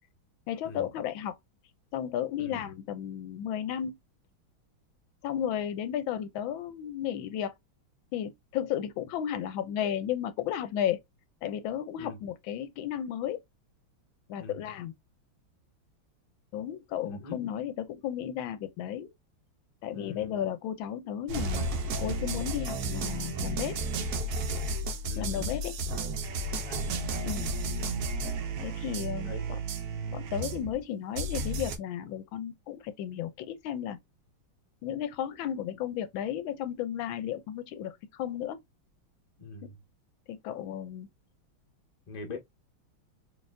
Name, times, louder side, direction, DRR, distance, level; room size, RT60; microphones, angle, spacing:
voice 1, 0.5-1.3 1.9-3.9 5.2-7.5 8.1-11.0 11.4-13.4 14.3-14.9 16.5-19.1 19.8-21.7 22.0-23.8 25.2-25.7 27.3-27.5 28.6-29.6 30.1-34.0 34.8-38.6 39.6-39.7 40.3-41.1, left 10 dB, 80° left, 1.3 m, -34 dB
voice 2, 17.0-17.4 19.9-20.4 25.0-25.5 26.6-26.8 29.2-29.4 39.4-39.8 42.1-42.4, left 3 dB, 30° left, 0.7 m, -43 dB
sound 1, 21.3-30.8 31.2-31.8, right 2 dB, 65° right, 1.0 m, -33 dB
4.0 x 3.3 x 2.5 m
omnidirectional pair, 2.2 m